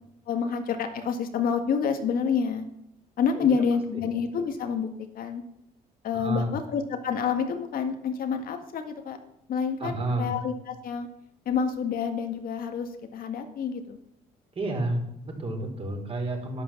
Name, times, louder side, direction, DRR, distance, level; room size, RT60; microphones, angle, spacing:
voice 1, 0.3-2.7 3.2-4.9 5.1-5.4 6.0-9.2 9.5-11.1 11.5-14.0, left 6 dB, 60° left, 6 dB, 1.9 m, -28 dB
voice 2, 6.1-6.5 9.8-10.3 14.5-16.6, right 2 dB, 35° right, 2 dB, 4.4 m, -30 dB
11.5 x 10.0 x 7.2 m, 0.77 s
cardioid pair, 110°, 17 cm